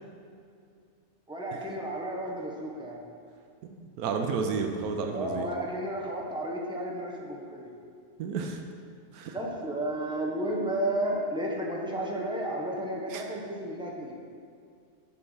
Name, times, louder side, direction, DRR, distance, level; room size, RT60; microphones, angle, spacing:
voice 1, 1.3-3.0 5.1-7.7 9.3-14.2, right 1 dB, 5° right, -2 dB, 0.9 m, -32 dB
voice 2, 3.6-5.4 8.2-8.6 9.1-9.4 13.1-13.2, right 5 dB, 90° right, 3 dB, 1.2 m, -31 dB
9.4 x 4.6 x 5.6 m, 2.3 s
omnidirectional pair, 1.5 m